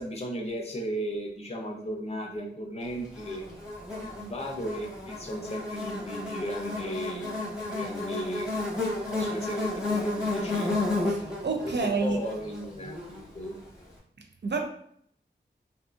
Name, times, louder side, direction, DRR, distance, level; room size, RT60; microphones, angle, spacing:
voice 1, 0.0-3.4 3.9-8.5 8.9-10.7 11.6-13.5, equal, 35° left, 0.6 m, -35 dB
Buzz, 3.2-13.6, left 2 dB, 5° right, 1.0 m, -32 dB
voice 2, 11.1-12.2 14.4-14.7, right 4 dB, 65° right, 0.5 m, -29 dB
2.6 x 2.5 x 2.4 m
wide cardioid pair, 60°, 19 cm